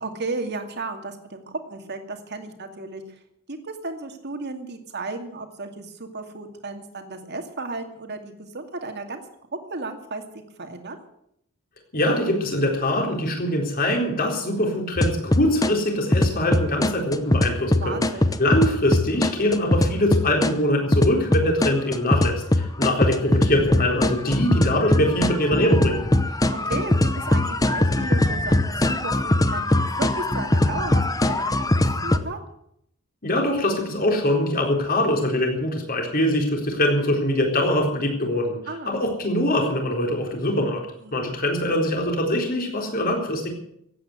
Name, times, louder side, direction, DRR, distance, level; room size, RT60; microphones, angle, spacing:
voice 1, 0.0-3.2 3.5-9.2 9.7-10.2 10.6-11.0 17.8-18.3 26.3-32.4 38.7-39.1 41.0-41.2, right 3 dB, 50° right, 5 dB, 2.3 m, -34 dB
voice 2, 11.9-18.0 18.4-26.1 33.2-38.6 38.9-40.8 41.1-43.5, left 1 dB, 45° left, 2 dB, 4.0 m, -23 dB
sound 1, 15.0-15.7 16.1-20.5 20.9-32.2, left 1 dB, 15° left, 0.8 m, -21 dB
15.5 x 9.2 x 9.5 m, 0.74 s
head